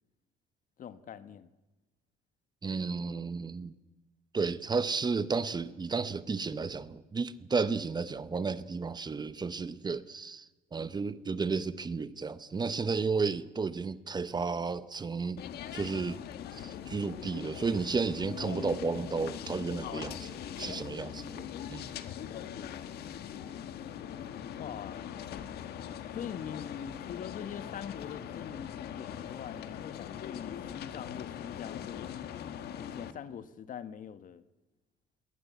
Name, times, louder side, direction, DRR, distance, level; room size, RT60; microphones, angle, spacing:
voice 1, 0.8-1.5 22.0-23.2 24.6-25.1 26.1-32.3 32.8-34.4, left 8 dB, 50° left, 1.3 m, -43 dB
voice 2, 2.6-3.7 4.3-10.5 10.7-15.4 15.7-16.2 16.5-21.9, right 4 dB, 25° right, 1.0 m, -33 dB
sound 1, 15.4-33.1, left 9 dB, 70° left, 1.6 m, -41 dB
21.5 x 18.0 x 8.5 m
cardioid pair, 110°, 17 cm